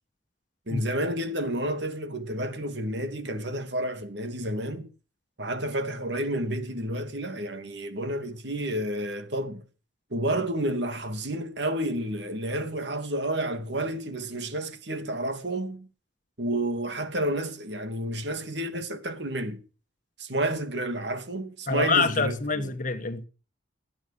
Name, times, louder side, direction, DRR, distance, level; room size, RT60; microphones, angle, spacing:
voice 1, 0.7-4.9 5.4-9.6 10.1-15.9 16.4-19.6 20.2-22.7, right 1 dB, 65° right, 2.6 m, -30 dB
voice 2, 21.7-23.2, left 4 dB, 45° left, 1.4 m, -26 dB
19.0 x 9.0 x 6.9 m
head